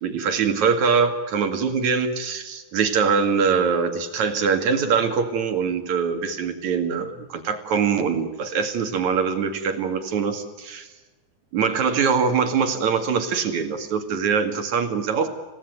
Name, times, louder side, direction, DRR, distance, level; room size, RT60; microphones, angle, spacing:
voice 1, 0.0-10.9 11.5-15.3, right 6 dB, 60° right, 7 dB, 3.4 m, -23 dB
27.0 x 17.5 x 9.5 m, 1.2 s
omnidirectional pair, 3.8 m